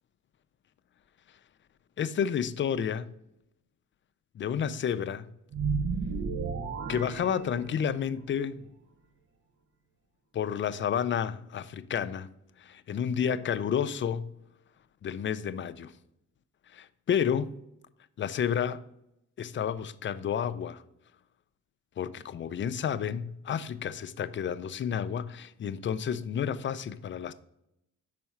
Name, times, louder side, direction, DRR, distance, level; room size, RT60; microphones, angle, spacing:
voice 1, 2.0-3.1 4.4-5.3 6.9-8.7 10.3-12.3 12.6-14.3 15.0-15.9 16.7-17.5 18.2-18.8 19.4-20.8 22.0-27.3, left 8 dB, 40° left, 0.4 m, -30 dB
sound 1, 5.5-8.1, right 5 dB, 50° right, 0.8 m, -33 dB
5.6 x 4.2 x 5.8 m
cardioid pair, 90°, 30 cm